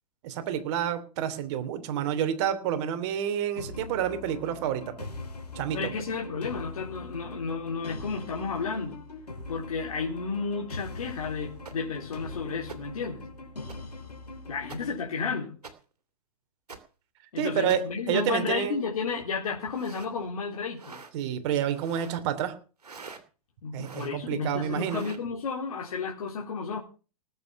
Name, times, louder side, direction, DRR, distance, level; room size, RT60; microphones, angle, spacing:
voice 1, 0.2-5.1 5.5-5.8 17.4-18.8 21.1-22.5 23.7-25.0, right 9 dB, 45° right, 10 dB, 2.9 m, -29 dB
sound 1, 3.6-15.0, left 2 dB, 85° left, 3.8 m, -42 dB
voice 2, 5.7-9.0 9.5-13.2 14.5-15.5 17.3-21.0 23.6-26.8, left 5 dB, 65° left, -1 dB, 3.7 m, -32 dB
sound 2, 11.7-11.8 12.7-12.8 13.7-13.8 14.7-14.8 15.6-15.7 16.7-16.8 17.7-17.8 19.6-20.1 20.8-21.1 21.7-22.2 22.8-23.2 23.8-24.2 24.8-25.2, right 5 dB, 80° right, 2.8 m, -45 dB
19.0 x 8.7 x 5.9 m, 0.36 s
figure-of-eight pair, 105°, 20 cm